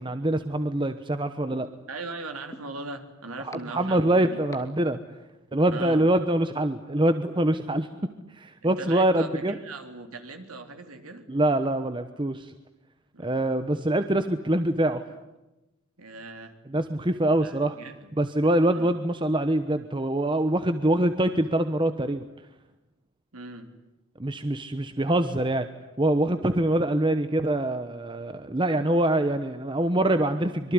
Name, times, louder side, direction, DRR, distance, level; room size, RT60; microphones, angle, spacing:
voice 1, 0.0-1.7 3.4-5.0 5.5-8.1 8.4-9.6 11.3-12.5 13.2-15.0 16.7-17.7 18.2-22.3 24.2-25.7 26.0-30.7, right 1 dB, 20° right, 9 dB, 1.1 m, -24 dB
sound 1, 1.5-1.6 2.5-2.6 3.5-3.6 4.5-4.6 5.5-5.6, left 1 dB, 15° left, 2.5 m, -40 dB
voice 2, 1.9-4.4 5.7-6.0 8.6-11.2 13.1-13.4 16.0-16.5 17.2-18.2 18.7-18.9 23.3-23.8, right 3 dB, 80° right, 6 dB, 3.7 m, -39 dB
25.5 x 23.5 x 9.7 m, 1.0 s
head